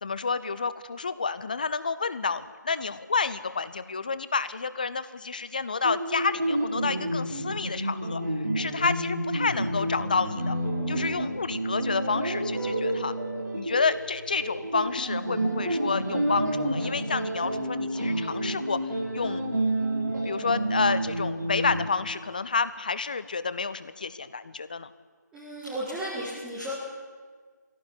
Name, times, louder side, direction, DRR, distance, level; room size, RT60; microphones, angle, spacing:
voice 1, 0.0-8.2 8.5-10.6 10.9-13.1 13.5-18.8 19.1-19.5 20.2-24.9, left 4 dB, 25° left, 14 dB, 0.8 m, -29 dB
sound 1, 5.8-21.8, right 1 dB, 65° right, 5.1 m, -29 dB
voice 2, 25.3-26.8, equal, 5° right, -7 dB, 2.1 m, -34 dB
19.5 x 16.5 x 10.0 m, 1.5 s
figure-of-eight pair, 165°, 10 cm